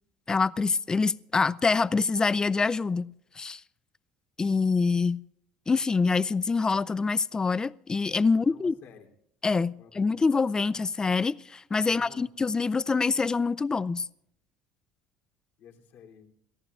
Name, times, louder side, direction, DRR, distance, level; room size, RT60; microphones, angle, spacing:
voice 1, 0.3-3.6 4.4-5.2 5.7-8.7 9.4-14.1, left 4 dB, 20° left, 0.4 m, -25 dB
voice 2, 8.3-9.1 9.8-10.3 11.8-12.2 15.6-16.3, left 7 dB, 60° left, 3.1 m, -52 dB
28.5 x 14.0 x 2.5 m
supercardioid pair, 110°, 4 cm